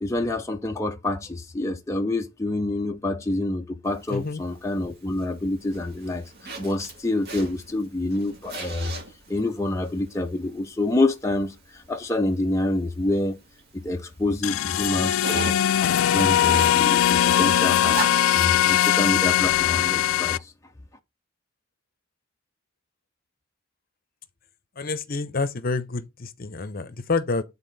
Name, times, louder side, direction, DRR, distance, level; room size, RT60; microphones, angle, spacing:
voice 1, 0.0-6.3 6.6-8.9 9.3-13.4 13.7-15.5 15.9-18.0 18.3-20.5, left 2 dB, 15° left, 0.5 m, -27 dB
Zipper (clothing), 3.9-20.3, right 2 dB, 50° right, 2.2 m, -40 dB
voice 2, 4.1-4.4 24.8-27.4, left 3 dB, 45° left, 0.7 m, -28 dB
sound 1, 14.4-20.4, left 11 dB, 80° left, 0.3 m, -20 dB
9.0 x 4.1 x 4.0 m
head